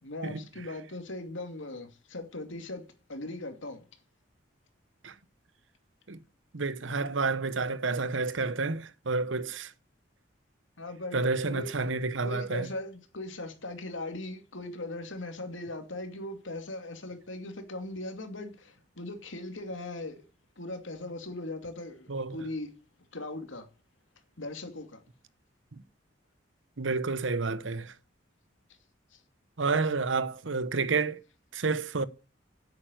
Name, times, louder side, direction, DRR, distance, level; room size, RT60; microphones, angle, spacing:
voice 1, 0.0-3.8 10.8-11.2 11.5-11.7 12.2-20.2 20.6-22.7 23.1-23.7 24.4-25.0 29.1-29.2, left 2 dB, 85° left, 2.6 m, -39 dB
voice 2, 6.5-9.7 11.1-12.7 22.1-22.4 25.7-25.8 26.8-27.9 29.6-31.2 31.5-32.0, right 4 dB, 80° right, 0.9 m, -30 dB
9.6 x 8.9 x 9.2 m
head